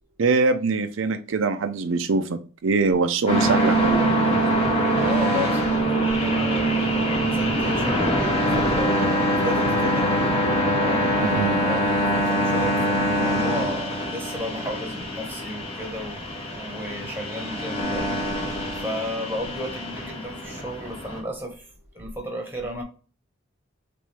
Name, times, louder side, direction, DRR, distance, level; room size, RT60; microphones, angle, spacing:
voice 1, 0.2-4.2 11.2-11.6, right 4 dB, 75° right, 0.5 m, -23 dB
sound 1, 3.3-21.2, equal, 30° left, 1.8 m, -24 dB
voice 2, 5.0-6.9 7.2-10.1 10.6-18.2 18.8-21.7 21.9-22.8, left 1 dB, 10° right, 1.2 m, -33 dB
6.2 x 2.6 x 3.3 m
head